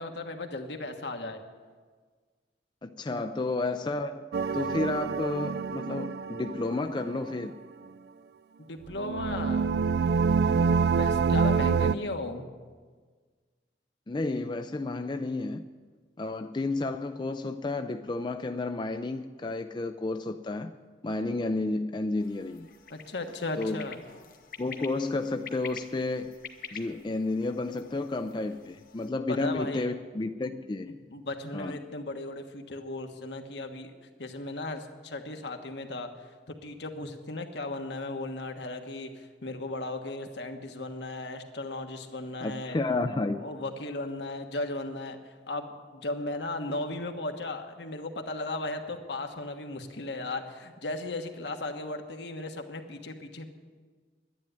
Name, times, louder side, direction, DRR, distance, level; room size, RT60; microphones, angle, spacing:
voice 1, 0.0-1.4 8.7-10.1 11.0-12.4 22.9-24.0 29.3-29.9 30.4-30.6 30.9-33.9 34.2-42.8 43.4-53.5, left 2 dB, 75° left, 5 dB, 1.4 m, -36 dB
voice 2, 2.8-7.5 14.1-15.6 16.2-20.7 21.0-22.7 23.6-23.8 24.6-26.4 26.7-31.0 31.5-31.8 42.4-43.4, left 2 dB, 25° left, 8 dB, 0.4 m, -31 dB
sound 1, 4.3-7.2 8.9-12.0, right 5 dB, 60° right, 0.3 m, -26 dB
sound 2, 22.2-29.1, left 6 dB, 50° left, 1.1 m, -48 dB
11.5 x 10.5 x 9.3 m, 1.5 s
head